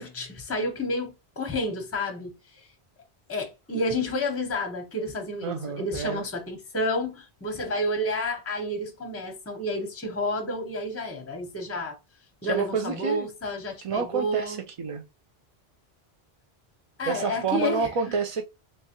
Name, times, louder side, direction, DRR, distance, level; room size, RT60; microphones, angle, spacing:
voice 1, 0.0-2.7 3.3-12.0 12.4-14.6 17.0-17.9, left 1 dB, 15° left, 0.7 m, -30 dB
voice 2, 5.4-6.2 12.4-13.3 13.8-15.0 17.1-18.4, right 5 dB, 60° right, 0.3 m, -29 dB
3.3 x 3.1 x 2.8 m
omnidirectional pair, 1.1 m